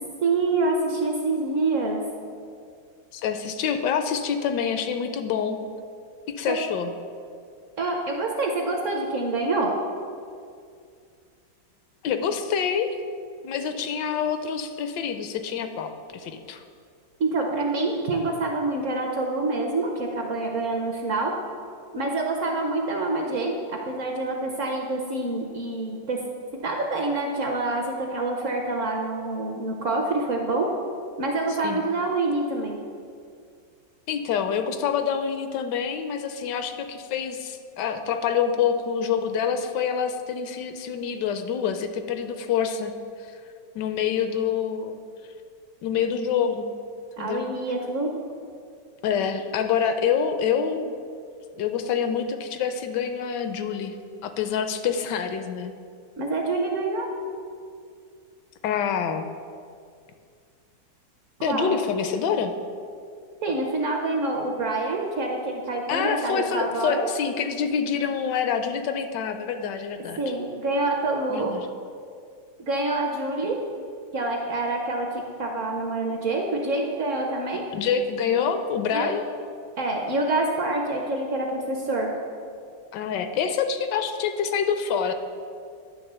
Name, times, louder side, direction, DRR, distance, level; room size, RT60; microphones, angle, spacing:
voice 1, 0.2-2.0 6.5-6.6 7.8-9.7 17.2-21.3 21.9-26.2 26.5-30.7 31.2-32.8 47.2-48.1 56.2-57.1 61.5-61.7 63.4-67.1 70.2-71.6 72.6-73.6 74.1-75.1 75.4-77.6 78.9-79.1 79.8-82.1, right 2 dB, 60° right, 1 dB, 0.8 m, -26 dB
voice 2, 3.1-5.6 6.3-6.9 12.0-13.0 13.4-16.6 31.5-31.8 34.1-42.9 43.2-43.4 43.7-45.0 45.8-46.7 47.2-47.5 49.0-50.9 51.6-54.0 54.2-55.7 58.6-59.3 61.4-62.5 65.9-70.2 71.3-71.7 77.7-79.3 82.9-85.1, left 7 dB, 75° left, 8 dB, 1.1 m, -26 dB
10.0 x 3.4 x 6.6 m, 2.3 s
omnidirectional pair, 1.9 m